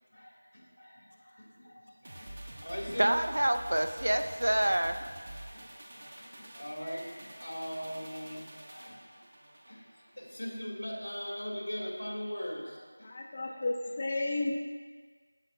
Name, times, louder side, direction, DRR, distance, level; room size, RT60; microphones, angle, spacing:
voice 1, 0.1-2.3 2.6-3.1 5.4-9.1 9.7-9.8 10.1-13.1 13.4-13.5, equal, 90° left, -2 dB, 2.1 m, -41 dB
sound 1, 2.0-10.6 10.9-11.1, right 1 dB, 45° right, 0.9 m, -48 dB
voice 2, 3.0-5.0, right 1 dB, 75° right, 8 dB, 0.5 m, -27 dB
voice 3, 13.0-14.6, left 2 dB, 25° left, 0 dB, 0.5 m, -32 dB
13.0 x 4.7 x 2.5 m, 1.5 s
figure-of-eight pair, 175°, 0 cm